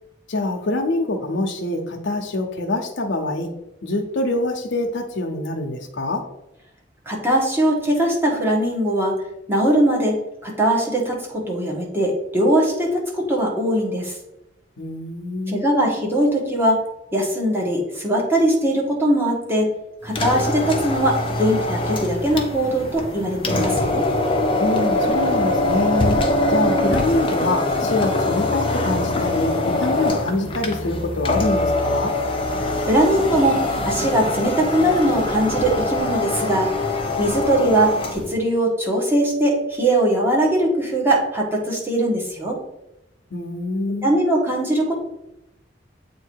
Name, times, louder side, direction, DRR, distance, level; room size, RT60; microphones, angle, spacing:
voice 1, 0.3-3.5 3.8-6.2 14.8-15.6 24.6-26.2 26.5-32.1 43.3-44.2, left 2 dB, 75° left, 3 dB, 0.8 m, -25 dB
voice 2, 7.1-9.1 9.5-10.2 10.4-14.2 15.5-16.8 17.1-19.7 20.0-24.0 32.9-33.6 33.8-36.7 37.2-42.6 44.0-45.0, right 1 dB, 15° right, -2 dB, 1.4 m, -20 dB
sound 1, 20.1-38.3, left 2 dB, 30° left, 0.7 m, -23 dB
7.8 x 2.7 x 4.6 m, 0.90 s
head